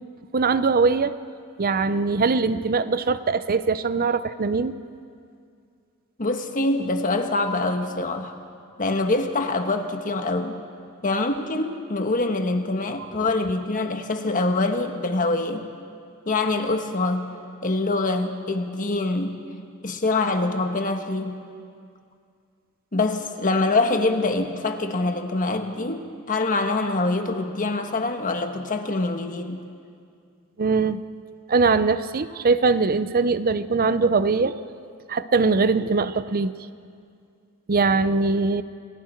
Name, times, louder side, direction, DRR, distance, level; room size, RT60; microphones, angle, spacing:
voice 1, 0.3-1.1 1.6-4.7 30.6-31.0 31.5-34.6 35.1-36.5 37.7-38.6, right 4 dB, 45° right, 13 dB, 0.6 m, -21 dB
voice 2, 6.2-8.3 8.8-10.5 11.0-15.6 16.3-17.3 17.6-19.4 19.8-21.4 22.9-29.6, left 2 dB, 40° left, 5 dB, 1.4 m, -24 dB
29.0 x 20.5 x 4.6 m, 2.3 s
head